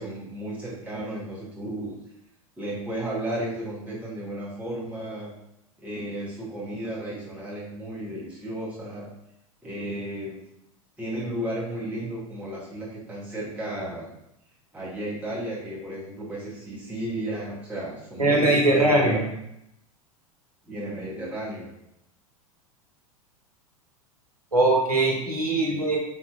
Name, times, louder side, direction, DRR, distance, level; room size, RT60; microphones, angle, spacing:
voice 1, 0.0-1.9 2.6-5.3 5.8-9.1 9.6-10.4 11.0-14.1 14.7-19.2 20.6-21.7 25.6-25.8, right 1 dB, 5° right, -8 dB, 1.0 m, -33 dB
voice 2, 18.2-19.3 24.5-26.0, right 2 dB, 90° right, -1 dB, 0.7 m, -21 dB
3.5 x 2.7 x 2.3 m, 0.81 s
figure-of-eight pair, 90°, 19 cm